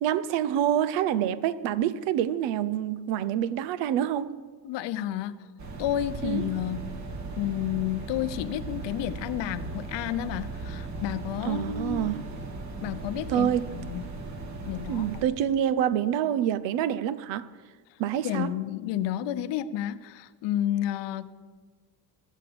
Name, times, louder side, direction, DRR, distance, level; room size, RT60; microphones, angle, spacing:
voice 1, 0.0-4.3 6.2-6.4 11.5-12.2 13.3-13.7 14.9-17.5 18.0-18.5, right 10 dB, 80° right, 0.9 m, -27 dB
voice 2, 4.6-5.4 5.8-6.9 7.4-12.1 12.8-14.1 14.6-15.1 18.2-21.4, left 12 dB, 75° left, 0.9 m, -31 dB
sound 1, 5.6-15.2, right 3 dB, 40° right, 2.0 m, -37 dB
20.5 x 7.5 x 6.9 m
cardioid pair, 105°, 44 cm